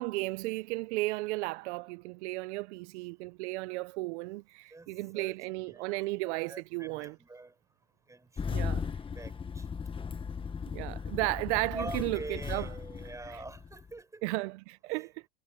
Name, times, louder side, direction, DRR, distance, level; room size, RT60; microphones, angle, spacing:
voice 1, 0.0-7.2 8.5-8.8 10.7-12.7 13.3-13.4 14.2-15.1, right 22 dB, 70° right, 0.7 m, -34 dB
voice 2, 4.7-5.3 5.6-5.9 6.2-7.5 8.1-9.7 11.7-14.2 14.9-15.1, right 2 dB, 10° right, 5.4 m, -45 dB
Engine starting, 8.4-13.9, left 6 dB, 15° left, 1.2 m, -37 dB
supercardioid pair, 135°, 36 cm